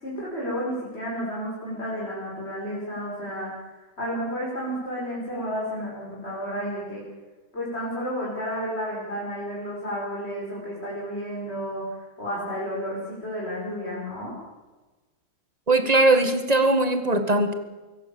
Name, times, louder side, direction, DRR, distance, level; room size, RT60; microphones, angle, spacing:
voice 1, 0.0-3.5 4.0-7.0 7.5-14.3, equal, 30° left, -6 dB, 6.4 m, -31 dB
voice 2, 15.7-17.5, right 2 dB, 20° right, 8 dB, 1.7 m, -20 dB
23.5 x 17.0 x 7.1 m, 1.2 s
omnidirectional pair, 2.1 m